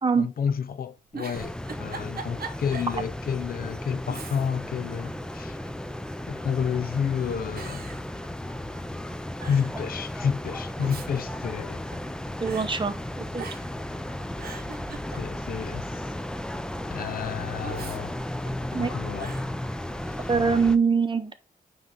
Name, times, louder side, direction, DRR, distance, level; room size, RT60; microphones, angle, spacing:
voice 1, 0.1-5.6 6.3-7.9 9.5-11.8 15.2-15.9 16.9-18.2 18.7-19.4 20.2-20.3, left 7 dB, 75° left, 0.5 m, -30 dB
Giggle, 1.1-3.0 3.4-3.5 4.0-4.7 5.1-5.9 6.6-7.0 7.6-8.8 9.1-9.2 9.4-9.8 10.6-12.1 12.5-12.7 13.4-13.8 14.2-15.6 17.6-18.8 19.2-19.5, right 5 dB, 90° right, 1.0 m, -41 dB
sound 1, 1.3-20.8, left 1 dB, 5° left, 0.4 m, -35 dB
voice 2, 12.4-13.4 18.7-18.9 20.3-21.3, right 5 dB, 30° right, 0.7 m, -23 dB
9.2 x 3.2 x 3.7 m
wide cardioid pair, 145°, 15 cm